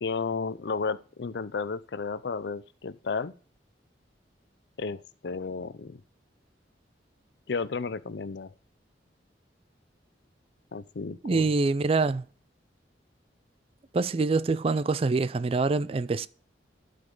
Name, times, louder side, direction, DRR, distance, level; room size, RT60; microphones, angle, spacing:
voice 1, 0.0-3.3 4.8-6.0 7.5-8.5 10.7-11.5, left 4 dB, 70° left, 0.5 m, -33 dB
voice 2, 11.2-12.3 13.9-16.3, right 3 dB, 30° right, 0.3 m, -25 dB
12.0 x 5.2 x 3.7 m
head